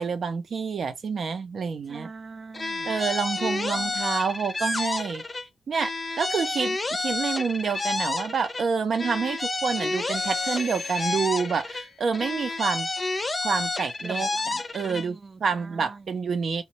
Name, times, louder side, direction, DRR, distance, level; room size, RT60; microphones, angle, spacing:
voice 1, 0.0-2.1 2.8-5.2 5.7-12.9 13.4-14.3 14.7-16.6, right 5 dB, 65° right, 0.7 m, -28 dB
voice 2, 1.9-2.9 3.4-4.0 14.0-16.0, right 4 dB, 35° right, 0.4 m, -43 dB
sound 1, 2.5-5.4 5.7-8.6 8.9-11.8 12.1-15.0, left 3 dB, 30° left, 0.6 m, -30 dB
sound 2, 9.8-13.1, left 5 dB, 75° left, 0.6 m, -43 dB
3.1 x 2.4 x 2.9 m
cardioid pair, 95°, 0 cm